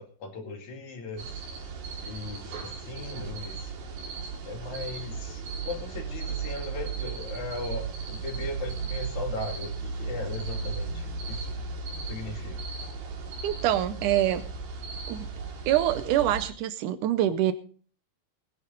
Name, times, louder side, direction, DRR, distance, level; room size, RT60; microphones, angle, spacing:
voice 1, 0.0-1.4 2.0-3.7 4.5-11.5 12.0-12.6, left 3 dB, 50° left, 3 dB, 3.4 m, -38 dB
sound 1, 1.2-16.5, right 4 dB, 65° right, 4.2 m, -36 dB
voice 2, 13.4-14.4 15.1-15.3 15.7-17.5, right 12 dB, 90° right, 12 dB, 1.7 m, -25 dB
19.5 x 11.0 x 3.9 m, 0.42 s
omnidirectional pair, 4.6 m